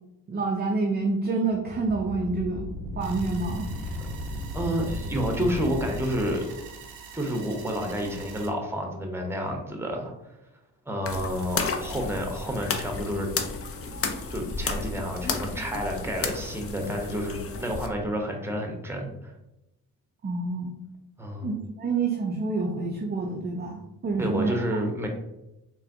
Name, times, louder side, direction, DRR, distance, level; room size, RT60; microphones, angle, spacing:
voice 1, 0.3-2.6 3.0-3.7 20.2-20.7 21.4-24.8, right 3 dB, 20° right, 0 dB, 0.5 m, -28 dB
sound 1, 1.5-6.3, left 1 dB, 75° left, 1.0 m, -35 dB
sound 2, 3.0-8.5, right 6 dB, 80° right, 0.6 m, -45 dB
voice 2, 4.5-6.4 7.1-10.1 10.9-13.3 14.3-19.3 21.2-21.5 24.2-25.1, equal, 5° right, 2 dB, 0.8 m, -30 dB
sound 3, 11.1-17.9, left 4 dB, 30° left, 0.5 m, -32 dB
3.9 x 2.3 x 2.6 m, 0.91 s
hypercardioid pair, 45°, 46 cm